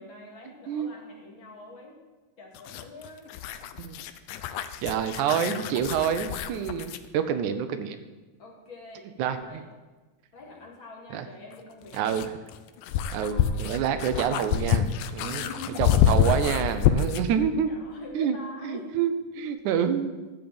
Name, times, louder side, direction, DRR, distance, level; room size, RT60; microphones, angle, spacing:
voice 1, 0.0-2.0 2.4-3.3 7.3-7.4 8.4-9.6 10.3-12.3 13.0-13.7 15.2-15.9 17.6-18.9, left 2 dB, 45° left, -1 dB, 2.4 m, -45 dB
sound 1, 2.5-7.1 9.4-9.5 11.5-17.3, left 9 dB, 85° left, 2.2 m, -27 dB
voice 2, 4.8-8.0 9.2-9.6 11.1-11.3 11.9-12.3 13.1-15.5 15.8-17.7 18.1-20.3, right 8 dB, 80° right, 10 dB, 2.1 m, -28 dB
13.5 x 5.3 x 8.7 m, 1.3 s
omnidirectional pair, 3.5 m